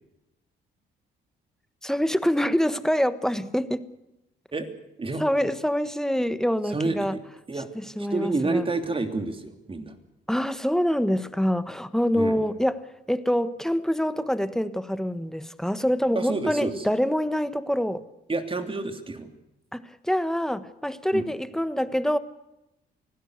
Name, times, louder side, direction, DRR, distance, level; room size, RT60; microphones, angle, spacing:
voice 1, 1.8-3.8 5.2-7.2 8.0-8.6 10.3-12.8 13.1-18.0 19.7-22.2, equal, ahead, 13 dB, 1.3 m, -25 dB
voice 2, 6.6-7.2 7.5-7.7 8.0-9.9 12.1-12.4 16.1-16.9 18.3-19.3 21.1-21.3, right 3 dB, 25° right, 7 dB, 3.1 m, -29 dB
25.0 x 16.5 x 8.1 m, 0.91 s
cardioid pair, 90°, 20 cm